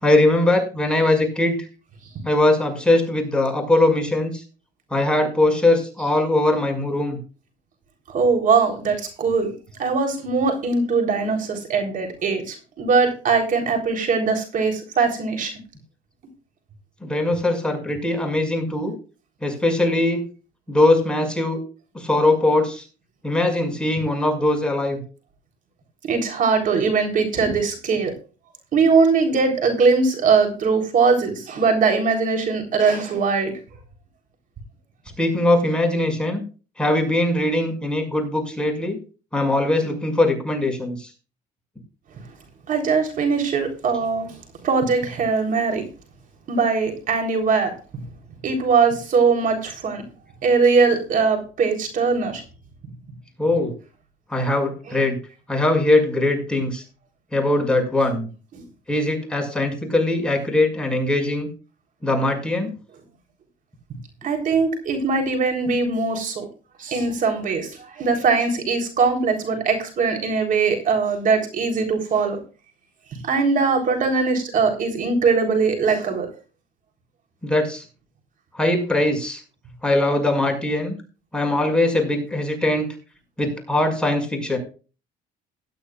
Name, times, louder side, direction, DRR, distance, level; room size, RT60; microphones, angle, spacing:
voice 1, 0.0-1.7 2.2-4.4 4.9-7.2 17.0-18.9 19.4-20.2 20.7-21.6 21.9-22.8 23.2-25.0 35.2-36.4 36.8-39.0 39.3-41.1 53.4-53.7 54.3-55.2 55.5-56.8 57.3-58.3 58.9-61.5 62.0-62.7 77.4-77.8 78.5-79.4 79.8-80.9 81.3-82.9 83.4-84.6, left 2 dB, 5° left, 5.8 m, -21 dB
voice 2, 8.1-9.5 9.8-15.5 26.0-28.1 28.7-33.5 42.7-44.4 44.6-45.9 46.5-47.7 48.4-50.0 50.4-52.4 55.0-55.1 58.5-58.6 64.2-66.4 66.8-72.4 73.2-76.3, right 4 dB, 55° right, 3.7 m, -21 dB
17.5 x 12.5 x 2.4 m
cardioid pair, 110°, 17 cm